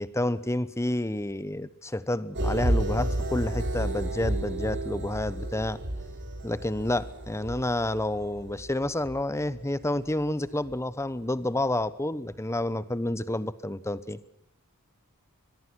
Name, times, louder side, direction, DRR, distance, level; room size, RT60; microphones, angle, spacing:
voice 1, 0.0-5.8 6.4-14.2, left 1 dB, 15° left, 17 dB, 1.0 m, -29 dB
sound 1, 2.3-10.2 10.6-10.8, right 1 dB, 55° right, 3.6 m, -31 dB
24.0 x 21.5 x 6.3 m, 0.82 s
head